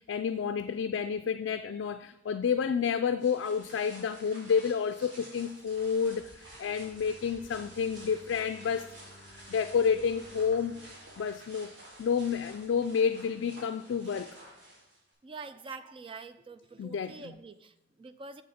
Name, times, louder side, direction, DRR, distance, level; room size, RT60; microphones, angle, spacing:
voice 1, 0.0-6.3 6.6-8.9 9.5-10.8 11.2-11.7 12.0-14.3 16.8-17.3, left 6 dB, 80° left, 9 dB, 0.3 m, -30 dB
sound 1, 3.2-15.1, right 1 dB, 80° right, 3.2 m, -51 dB
Bowed string instrument, 6.4-12.4, left 2 dB, 5° right, 1.7 m, -57 dB
voice 2, 15.2-18.4, right 4 dB, 30° right, 12 dB, 0.3 m, -46 dB
7.2 x 6.5 x 4.2 m, 0.92 s
head